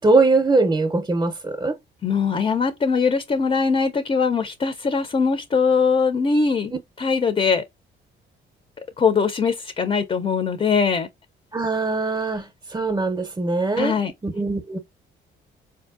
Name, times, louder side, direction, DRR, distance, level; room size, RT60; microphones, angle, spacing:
voice 1, 0.0-1.8 11.5-13.9 14.2-14.8, right 3 dB, 20° right, 0.6 m, -21 dB
voice 2, 2.0-6.7 7.0-7.6 9.0-11.1 13.8-14.1, left 5 dB, 30° left, 0.5 m, -21 dB
4.1 x 2.6 x 2.4 m
cardioid pair, 90°, 20 cm